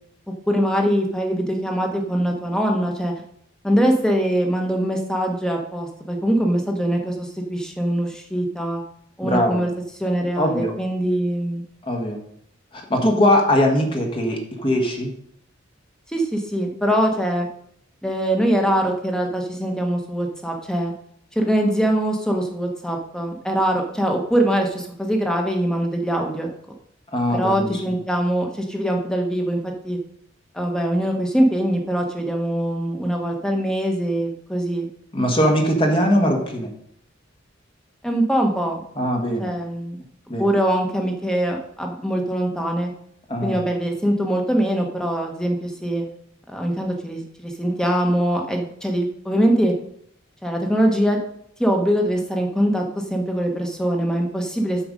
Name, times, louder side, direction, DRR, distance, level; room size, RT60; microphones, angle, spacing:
voice 1, 0.5-3.1 3.6-8.8 9.2-9.7 10.0-11.6 16.1-17.5 18.0-20.9 21.3-26.5 27.3-30.0 30.5-34.9 38.0-38.8 39.4-40.0 40.4-42.9 43.4-46.0 46.5-49.7 50.4-51.2 51.6-52.8 53.1-54.8, right 1 dB, 5° left, 2 dB, 1.3 m, -22 dB
voice 2, 9.2-9.6 10.4-10.7 11.8-12.2 12.7-15.1 27.1-27.8 35.1-36.7 38.9-39.5 40.3-40.5 43.3-43.6, equal, 25° left, 2 dB, 1.6 m, -21 dB
8.7 x 7.0 x 5.3 m, 0.69 s
head